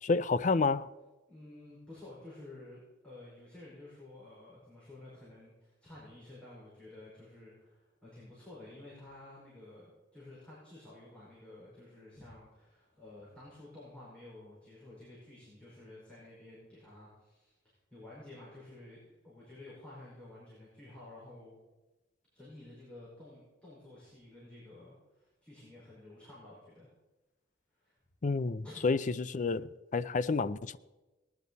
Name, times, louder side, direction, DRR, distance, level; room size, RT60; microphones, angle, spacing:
voice 1, 0.0-0.9 28.2-30.8, left 4 dB, 40° left, 0.5 m, -30 dB
voice 2, 1.3-21.6 22.3-26.9 27.8-28.0 28.6-28.8, left 2 dB, 5° left, 4.9 m, -52 dB
18.5 x 10.5 x 4.1 m
head